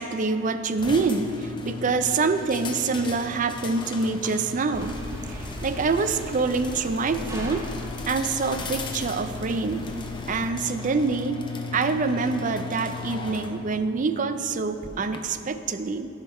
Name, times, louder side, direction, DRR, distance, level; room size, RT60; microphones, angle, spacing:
voice 1, 0.0-5.0 5.3-7.7 8.1-9.9 10.3-11.4 11.7-16.1, right 4 dB, 40° right, 10 dB, 0.4 m, -26 dB
sound 1, 0.8-15.2, left 4 dB, 25° left, 0.7 m, -37 dB
sound 2, 4.7-10.5, right 1 dB, 15° right, 0.8 m, -39 dB
16.0 x 5.8 x 4.2 m, 2.8 s
head